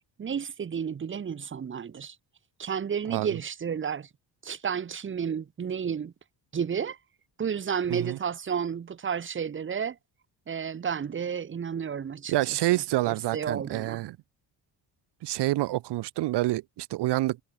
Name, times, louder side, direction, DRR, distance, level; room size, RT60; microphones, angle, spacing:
voice 1, 0.2-2.1 2.6-4.1 4.4-6.1 6.5-7.0 7.4-10.0 10.5-12.6 13.1-14.0, right 7 dB, 30° right, 1.2 m, -31 dB
voice 2, 3.1-3.4 7.9-8.2 12.3-14.2 15.2-17.4, right 17 dB, 85° right, 1.0 m, -27 dB
cardioid pair, 145°, 41 cm